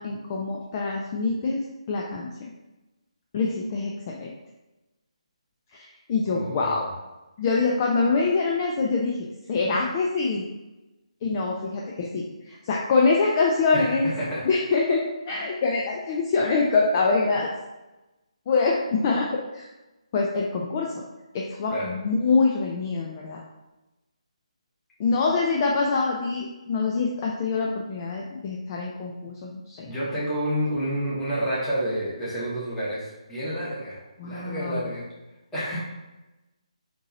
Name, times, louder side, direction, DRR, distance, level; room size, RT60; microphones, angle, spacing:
voice 1, 0.0-2.5 3.3-4.3 5.7-6.9 7.4-9.2 9.5-10.4 11.2-14.1 14.4-17.5 18.5-19.3 19.5-19.7 20.1-20.9 21.3-23.4 25.0-29.9 34.2-35.0, left 4 dB, 30° left, -2 dB, 0.4 m, -25 dB
voice 2, 6.2-6.7 13.7-14.4 21.7-21.9 29.8-35.1 35.5-35.8, equal, 10° left, -9 dB, 1.1 m, -29 dB
4.4 x 2.7 x 2.7 m, 1.0 s
figure-of-eight pair, 150°, 4 cm